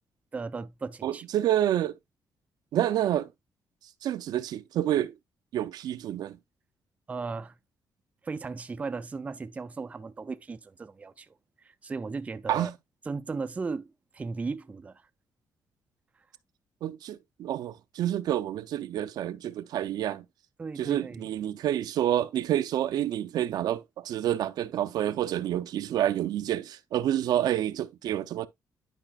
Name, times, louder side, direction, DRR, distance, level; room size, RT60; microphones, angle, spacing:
voice 1, 0.3-1.2 7.1-7.6 8.2-12.7 13.1-15.1 20.6-21.3, right 4 dB, 20° right, 0.4 m, -36 dB
voice 2, 1.0-2.0 2.7-3.3 4.0-5.1 5.5-6.4 12.5-12.7 16.8-20.2 20.8-28.5, right 11 dB, 75° right, 0.5 m, -28 dB
11.0 x 5.0 x 2.3 m
cardioid pair, 145°, 7 cm